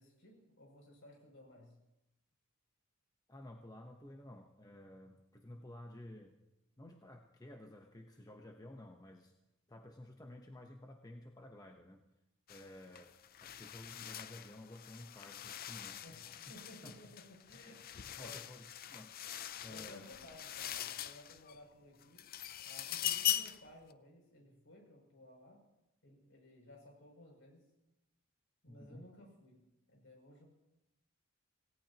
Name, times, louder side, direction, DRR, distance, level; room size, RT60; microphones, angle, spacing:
voice 1, 0.0-1.7 16.0-18.4 19.7-22.3 22.6-25.6 26.0-27.6 28.6-29.6 29.9-30.5, left 1 dB, 65° left, 0 dB, 7.0 m, -57 dB
voice 2, 3.3-6.4 6.8-9.3 9.7-12.0 12.5-16.1 16.8-17.0 18.2-20.1 28.7-29.1, left 1 dB, 20° left, 2 dB, 1.0 m, -53 dB
sound 1, 12.5-12.7 13.0-21.6 22.0-23.7, left 11 dB, 45° left, 0.5 m, -42 dB
26.5 x 17.5 x 3.0 m, 0.92 s
head